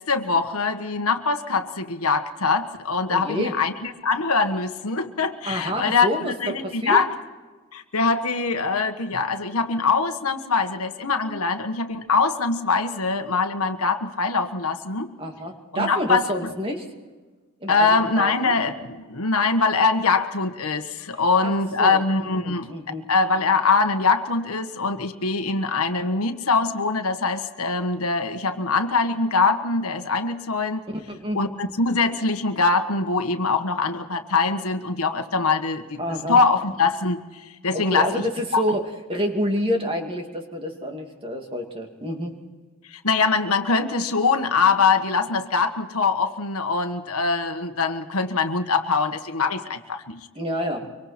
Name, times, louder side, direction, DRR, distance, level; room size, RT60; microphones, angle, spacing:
voice 1, 0.0-7.1 7.7-15.1 15.7-16.5 17.7-22.7 23.1-30.8 31.3-36.0 36.3-37.2 37.6-38.1 38.5-38.8 42.9-50.3, left 4 dB, 80° left, 7 dB, 1.5 m, -23 dB
voice 2, 3.1-3.6 5.4-7.0 15.2-16.9 17.6-18.6 21.4-21.5 21.8-23.0 30.9-31.4 36.0-36.4 37.7-42.3 50.4-50.9, equal, 25° right, 3 dB, 2.5 m, -28 dB
25.0 x 24.5 x 4.4 m, 1.3 s
head